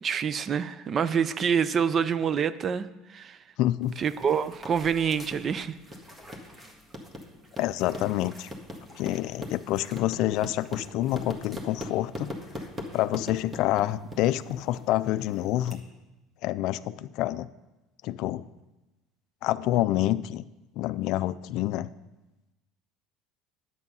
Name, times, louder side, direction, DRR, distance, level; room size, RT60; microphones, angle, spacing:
voice 1, 0.0-3.4 4.0-5.8, right 7 dB, 35° right, 15 dB, 0.5 m, -27 dB
voice 2, 3.6-4.0 7.6-8.5 9.0-12.3 12.9-15.8 16.4-17.5 18.0-18.4 19.4-20.4 20.8-21.9, left 14 dB, 65° left, 15 dB, 0.3 m, -27 dB
sound 1, 3.8-15.7, left 1 dB, 15° right, 1.6 m, -42 dB
9.8 x 8.1 x 5.5 m, 1.0 s
supercardioid pair, 110°, 0 cm